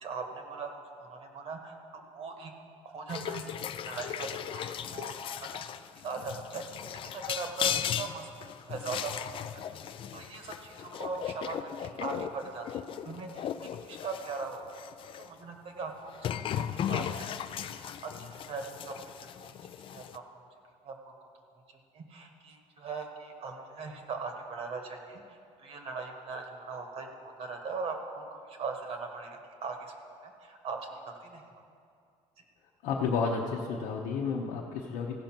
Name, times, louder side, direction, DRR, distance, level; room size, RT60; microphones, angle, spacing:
voice 1, 0.0-2.5 2.8-5.7 6.0-8.3 8.7-9.2 9.5-9.6 10.1-13.5 13.8-14.8 15.2-18.9 19.4-20.5 20.8-21.1 21.9-25.2 25.6-29.9 30.2-31.6, right 4 dB, 50° right, 4 dB, 1.4 m, -40 dB
sound 1, 3.1-15.3 16.1-20.2, left 9 dB, 45° left, 0.4 m, -37 dB
voice 2, 32.8-35.1, left 5 dB, 85° left, -2 dB, 0.9 m, -31 dB
15.5 x 5.3 x 6.0 m, 2.4 s
cardioid pair, 125°, 13 cm